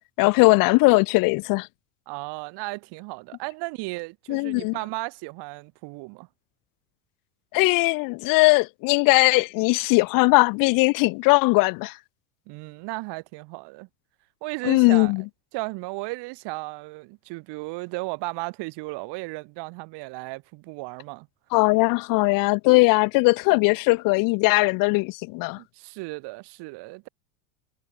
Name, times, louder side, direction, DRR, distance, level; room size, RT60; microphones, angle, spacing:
voice 1, 0.2-1.7 4.3-4.7 7.5-11.9 14.6-15.2 21.5-25.6, left 26 dB, 45° left, 0.6 m, -19 dB
voice 2, 2.1-6.3 12.5-13.9 14.4-15.1 15.5-21.3 25.6-27.1, right 25 dB, 60° right, 7.2 m, -35 dB
supercardioid pair, 115°, 46 cm